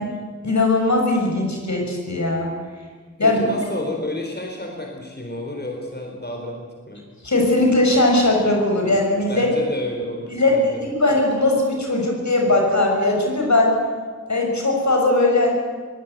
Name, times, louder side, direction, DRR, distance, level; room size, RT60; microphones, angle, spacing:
voice 1, 0.4-2.5 3.2-3.5 7.2-9.5 10.3-13.8 14.3-15.5, left 2 dB, 70° left, 0 dB, 6.4 m, -19 dB
voice 2, 3.2-7.0 9.3-10.9, left 1 dB, 35° left, 1 dB, 4.4 m, -31 dB
22.5 x 18.0 x 9.4 m, 1.5 s
wide cardioid pair, 65°, 29 cm